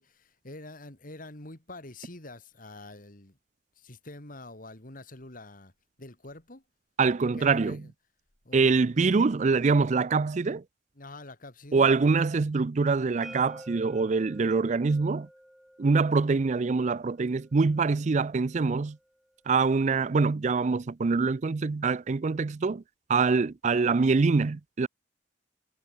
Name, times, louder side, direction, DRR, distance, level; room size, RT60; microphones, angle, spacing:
voice 1, 0.0-3.4 3.8-5.7 6.0-6.6 7.4-7.9 8.4-9.1 11.0-11.9, left 2 dB, 50° left, 3.0 m, -46 dB
voice 2, 7.0-7.8 8.5-10.6 11.7-15.3 15.8-19.0 19.5-22.8 23.1-24.9, right 4 dB, 40° right, 0.4 m, -24 dB
sound 1, 13.2-19.0, equal, ahead, 4.7 m, -51 dB
head